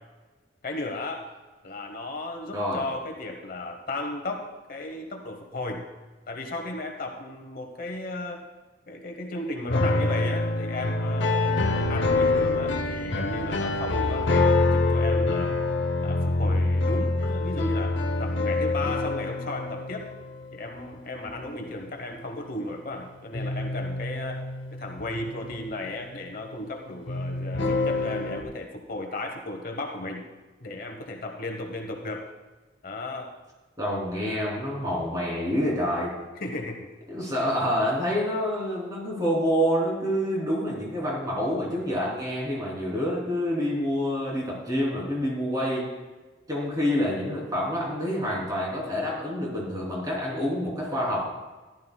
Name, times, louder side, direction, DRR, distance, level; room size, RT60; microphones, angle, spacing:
voice 1, 0.6-1.3 1.6-5.9 6.3-8.4 8.9-15.6 16.0-20.1 20.5-24.4 24.7-30.3 30.6-32.3 32.8-33.3 36.4-36.9, left 2 dB, 50° left, 3 dB, 1.1 m, -35 dB
sound 1, 9.7-21.0 21.3-22.4 23.3-26.5 27.1-28.4, left 2 dB, 70° left, 0.8 m, -26 dB
voice 2, 33.8-36.1 37.1-45.9 46.5-51.2, equal, 20° right, -4 dB, 3.2 m, -27 dB
14.5 x 11.5 x 2.3 m, 1.2 s
head